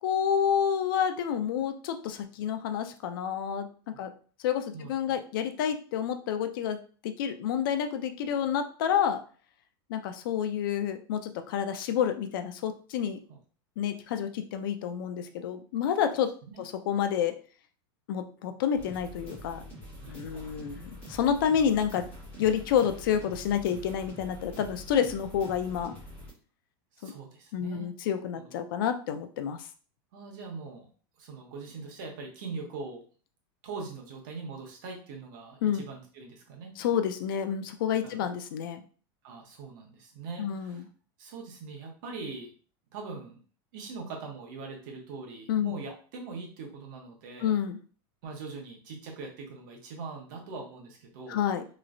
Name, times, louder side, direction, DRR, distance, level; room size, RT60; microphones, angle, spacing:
voice 1, 0.0-4.1 4.4-6.8 7.0-9.2 9.9-13.2 13.8-16.3 16.6-17.3 18.1-19.6 20.1-22.1 22.4-26.0 27.0-27.1 27.5-29.7 35.6-35.8 36.8-38.8 40.4-40.8 45.5-45.7 47.4-47.8 51.3-51.7, left 8 dB, 60° left, 8 dB, 0.4 m, -29 dB
voice 2, 4.7-5.2 13.3-13.4 16.5-16.6 20.0-20.6 26.9-28.5 30.1-30.9 31.2-33.0 33.6-36.7 38.0-38.2 39.2-40.8 41.2-42.5 42.9-43.4 43.7-47.5 48.2-51.4, right 4 dB, 50° right, 1 dB, 0.9 m, -42 dB
sound 1, 18.7-26.3, equal, 15° left, 1.6 m, -45 dB
3.0 x 3.0 x 2.5 m, 0.40 s
supercardioid pair, 175°, 13 cm